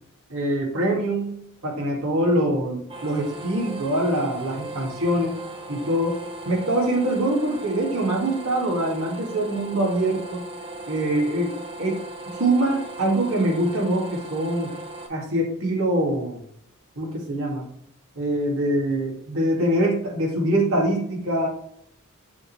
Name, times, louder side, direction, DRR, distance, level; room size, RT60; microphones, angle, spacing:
voice 1, 0.3-1.3 1.6-5.4 5.7-6.2 6.5-10.4 10.9-11.5 11.8-12.0 12.3-14.7 15.1-16.4 17.0-17.7 18.2-21.5, right 1 dB, 65° right, -2 dB, 2.2 m, -24 dB
sound 1, 2.9-15.1, right 2 dB, 25° right, 0.9 m, -38 dB
7.1 x 3.9 x 4.6 m, 0.69 s
head